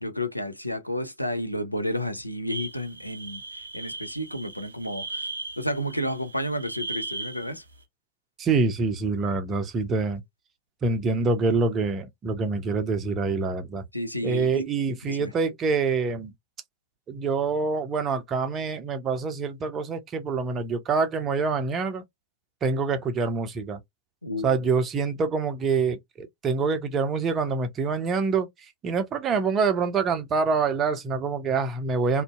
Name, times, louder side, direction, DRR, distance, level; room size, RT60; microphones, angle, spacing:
voice 1, 0.0-5.3 5.6-7.6 13.9-14.7 15.0-15.3 24.2-24.6, equal, 90° left, 0.4 m, -31 dB
sound 1, 2.5-7.5, right 2 dB, 75° right, 0.5 m, -37 dB
voice 2, 8.4-10.2 10.8-13.8 14.2-16.3 17.1-22.0 22.6-23.8 24.4-32.2, right 4 dB, 25° right, 0.6 m, -26 dB
2.5 x 2.1 x 2.3 m
figure-of-eight pair, 90°, 0 cm